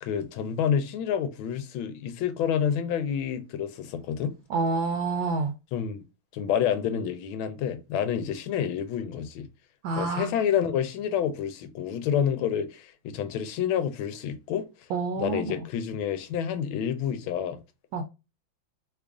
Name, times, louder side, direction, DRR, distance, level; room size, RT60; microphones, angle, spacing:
voice 1, 0.0-4.3 5.7-6.0 6.3-9.5 9.9-14.9 15.2-17.6, left 8 dB, 90° left, 1.4 m, -28 dB
voice 2, 4.5-5.5 9.8-10.3 14.9-15.5 17.9-18.0, right 3 dB, 75° right, 1.3 m, -28 dB
3.4 x 2.4 x 3.4 m
omnidirectional pair, 2.2 m